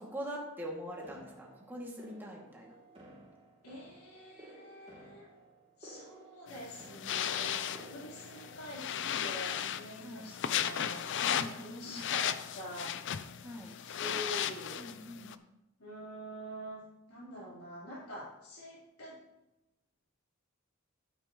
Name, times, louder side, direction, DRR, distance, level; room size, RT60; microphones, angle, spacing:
voice 1, 0.0-2.8 10.0-10.3 11.2-12.0 13.4-13.7 14.8-15.4, equal, 10° right, -2 dB, 2.2 m, -43 dB
sound 1, 1.0-8.7, right 1 dB, 30° right, 2.9 m, -55 dB
voice 2, 3.6-5.3 5.8-8.9 9.2-13.0 13.9-14.9 15.8-16.8 17.1-19.2, equal, 85° left, -6 dB, 3.8 m, -46 dB
sound 2, 6.5-15.3, left 9 dB, 55° left, 0.5 m, -36 dB
13.0 x 8.8 x 3.0 m, 0.95 s
head